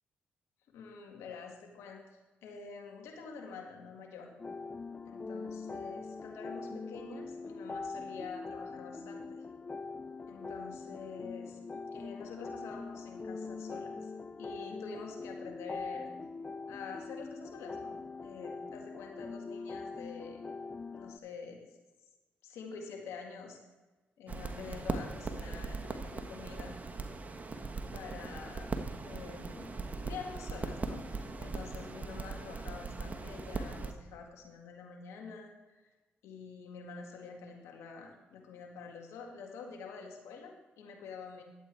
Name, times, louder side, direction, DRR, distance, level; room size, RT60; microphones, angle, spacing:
voice 1, 0.7-4.3 5.1-9.4 10.3-14.1 14.4-16.1 16.7-20.4 20.9-21.7 22.4-23.6 24.2-26.8 27.9-28.7 29.0-29.7 30.0-35.8 36.2-41.4, left 5 dB, 80° left, 1 dB, 1.9 m, -47 dB
sound 1, 4.4-21.2, left 4 dB, 25° left, 0.3 m, -43 dB
sound 2, 24.3-33.9, right 3 dB, 30° right, 1.3 m, -39 dB
11.5 x 8.2 x 4.5 m, 1.2 s
supercardioid pair, 50°, 5 cm